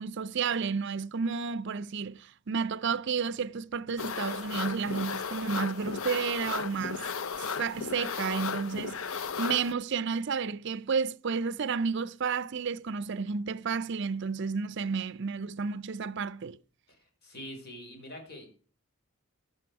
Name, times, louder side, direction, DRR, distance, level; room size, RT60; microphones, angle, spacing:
voice 1, 0.0-7.1 7.6-16.6, right 5 dB, 55° right, 0.5 m, -31 dB
sound 1, 4.0-9.7, left 5 dB, 70° left, 0.7 m, -35 dB
voice 2, 17.2-18.5, equal, 45° left, 5.1 m, -44 dB
14.0 x 12.0 x 4.7 m
head